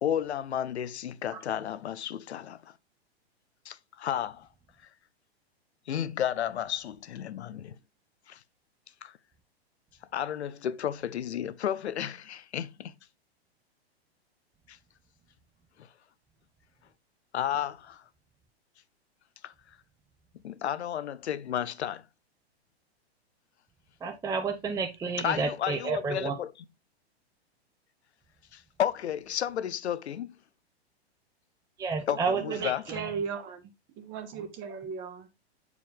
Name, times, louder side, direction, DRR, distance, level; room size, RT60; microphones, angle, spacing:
voice 1, 0.0-2.7 3.7-4.5 5.9-7.7 8.3-8.4 9.0-9.1 10.1-12.9 14.7-14.8 17.3-18.0 19.4-19.5 20.4-22.0 25.2-26.5 28.5-30.3 32.1-32.8, left 10 dB, 90° left, 0.6 m, -32 dB
voice 2, 24.0-26.3 31.8-33.1, right 5 dB, 10° right, 0.6 m, -31 dB
voice 3, 32.1-33.6 34.0-35.3, right 6 dB, 35° right, 1.2 m, -37 dB
6.8 x 4.7 x 3.4 m
hypercardioid pair, 120°, 32 cm